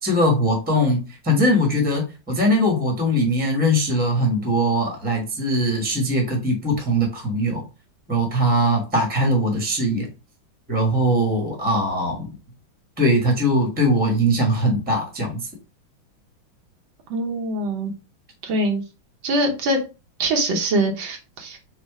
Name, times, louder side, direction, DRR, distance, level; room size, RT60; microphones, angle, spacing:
voice 1, 0.0-7.6 8.1-10.1 10.7-12.4 13.0-15.4, equal, 5° right, 0 dB, 1.1 m, -21 dB
voice 2, 17.1-17.9 18.4-18.8 19.2-19.8 20.2-21.6, right 1 dB, 75° right, 2 dB, 1.7 m, -23 dB
4.3 x 2.4 x 4.7 m, 0.32 s
omnidirectional pair, 2.2 m